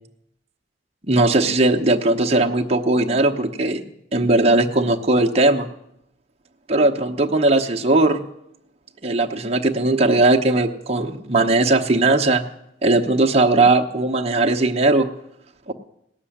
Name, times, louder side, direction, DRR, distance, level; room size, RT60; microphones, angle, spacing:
voice 1, 1.1-3.8 4.1-5.7 6.7-8.2 9.0-12.4 12.8-15.1 15.7-15.8, right 2 dB, 35° right, 1 dB, 0.9 m, -18 dB
17.5 x 6.9 x 9.9 m, 0.80 s
head